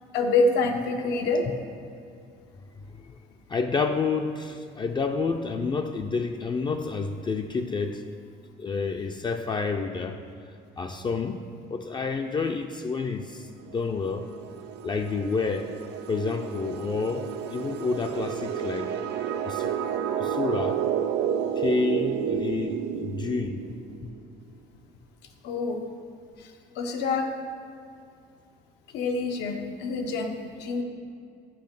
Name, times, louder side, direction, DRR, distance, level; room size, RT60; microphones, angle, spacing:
voice 1, 0.1-1.4 25.4-25.8 26.4-26.5 26.8-27.3 28.9-30.3 30.6-30.8, left 3 dB, 90° left, 4 dB, 0.8 m, -26 dB
voice 2, 3.5-8.0 8.6-10.2 10.8-11.4 11.7-14.3 14.8-15.7 16.1-18.9 19.5-19.7 20.2-20.8 21.6-24.1, left 4 dB, 25° left, 5 dB, 0.4 m, -29 dB
sound 1, 13.7-24.2, right 8 dB, 80° right, 0.5 m, -31 dB
7.7 x 5.1 x 5.3 m, 2.3 s
cardioid pair, 110°, 17 cm